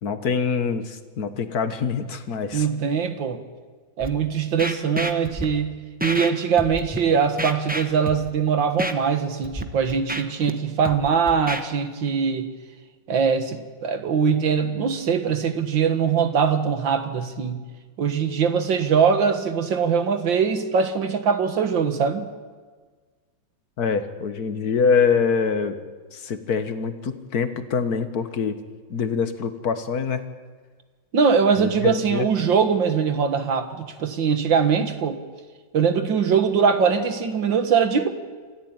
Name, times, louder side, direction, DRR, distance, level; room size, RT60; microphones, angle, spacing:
voice 1, 0.0-2.7 23.8-25.8 26.1-28.6 28.9-30.2 31.6-32.3, left 5 dB, 50° left, 9 dB, 1.8 m, -24 dB
voice 2, 2.5-3.4 4.0-12.5 13.1-17.6 18.0-22.3 31.1-35.2 35.7-38.1, right 6 dB, 65° right, 8 dB, 2.3 m, -22 dB
Scratching (performance technique), 4.0-4.1 4.6-5.4 6.0-6.3 6.6-7.0 7.4-8.3 8.8-8.9 9.4-9.6 9.9-10.5 10.8-11.6, right 1 dB, 10° right, 0.6 m, -29 dB
27.0 x 14.5 x 8.9 m, 1.5 s
omnidirectional pair, 2.3 m